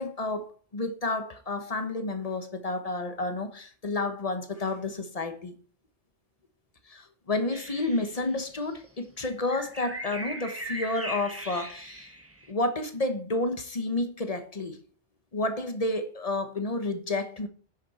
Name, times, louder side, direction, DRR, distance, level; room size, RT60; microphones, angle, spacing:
voice 1, 0.0-5.5 6.9-12.1 12.5-14.8 15.3-17.5, left 2 dB, 35° left, 1.2 m, -30 dB
sound 1, 7.5-8.7 9.5-12.5, right 1 dB, 15° right, 1.2 m, -39 dB
10.5 x 6.5 x 4.3 m
omnidirectional pair, 1.1 m